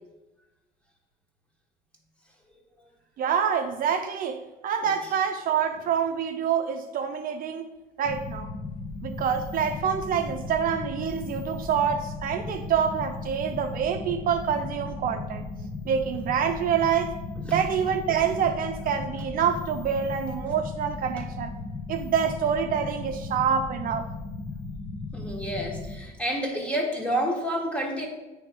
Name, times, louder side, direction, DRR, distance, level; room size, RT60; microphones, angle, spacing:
voice 1, 3.2-7.7 8.0-8.5 9.0-15.4 15.9-17.2 17.5-21.5 21.9-24.1, right 7 dB, 55° right, 0.5 m, -26 dB
sound 1, 8.0-26.0, left 3 dB, 35° left, 1.1 m, -36 dB
voice 2, 25.1-28.1, equal, 5° left, 1.4 m, -29 dB
8.5 x 3.4 x 4.8 m
cardioid pair, 110°, 17 cm